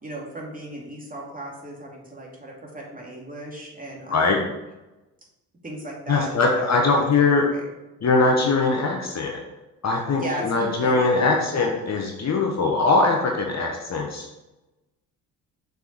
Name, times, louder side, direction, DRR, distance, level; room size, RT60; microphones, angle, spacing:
voice 1, 0.0-4.5 5.6-7.7 10.1-11.5, right 1 dB, 15° right, -2 dB, 2.6 m, -36 dB
voice 2, 6.1-7.5 8.0-9.4 9.8-14.2, left 3 dB, 35° left, 0 dB, 1.1 m, -21 dB
6.7 x 4.6 x 4.7 m, 1.0 s
figure-of-eight pair, 50°, 49 cm